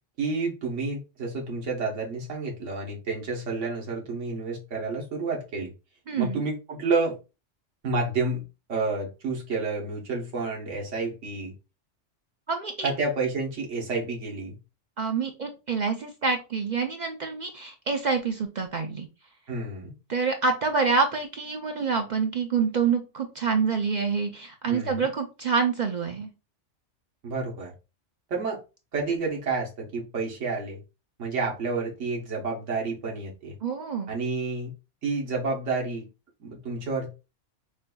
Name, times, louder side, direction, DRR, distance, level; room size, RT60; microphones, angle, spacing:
voice 1, 0.2-5.7 6.2-7.2 7.8-8.4 8.7-11.5 12.8-14.5 19.5-19.9 24.7-25.1 27.2-27.7 28.3-28.6 28.9-30.8 31.2-33.5 34.1-34.7 35.0-36.0 36.4-37.1, right 3 dB, 85° right, -1 dB, 1.5 m, -30 dB
voice 2, 6.1-6.4 12.5-12.9 15.0-19.1 20.1-26.3 33.6-34.1, right 5 dB, 55° right, 4 dB, 0.5 m, -27 dB
6.4 x 2.6 x 2.3 m, 0.29 s
omnidirectional pair, 1.2 m